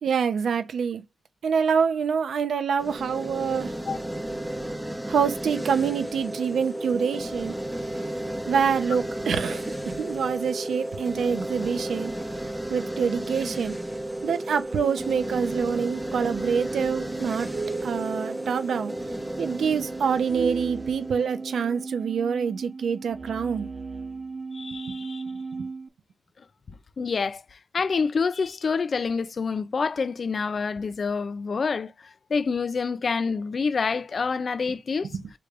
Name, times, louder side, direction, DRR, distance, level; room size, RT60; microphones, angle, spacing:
voice 1, 0.0-1.0 1.4-3.7 5.1-7.6 8.5-12.1 12.7-13.8 14.2-17.5 17.8-18.9 19.4-23.7 25.6-25.7 35.1-35.2, right 6 dB, 80° right, 0.7 m, -26 dB
sound 1, 2.8-21.9, right 1 dB, 5° right, 0.8 m, -33 dB
sound 2, 14.7-25.9, right 4 dB, 40° right, 0.5 m, -37 dB
voice 2, 24.5-25.2 27.0-35.2, left 5 dB, 50° left, 0.4 m, -27 dB
4.7 x 3.3 x 2.4 m
wide cardioid pair, 100°, 0 cm